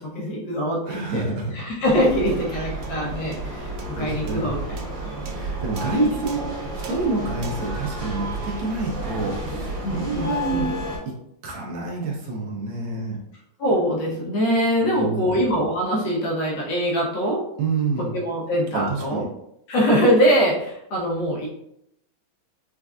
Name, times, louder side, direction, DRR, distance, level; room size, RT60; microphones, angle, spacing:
voice 1, 0.0-1.3 1.5-5.1 5.4-5.5 5.8-6.2 9.8-10.7 13.6-17.4 18.1-19.2 19.7-21.5, equal, 70° left, -3 dB, 1.3 m, -23 dB
voice 2, 0.9-1.5 3.6-4.6 5.3-10.7 11.4-13.2 14.8-15.4 17.6-18.1 18.7-19.2, right 3 dB, 70° right, -1 dB, 1.4 m, -28 dB
sound 1, 1.8-11.0, right 1 dB, 40° right, 1.8 m, -31 dB
sound 2, 2.8-9.4, right 6 dB, 90° right, 0.8 m, -43 dB
4.4 x 2.5 x 2.3 m, 0.78 s
omnidirectional pair, 2.4 m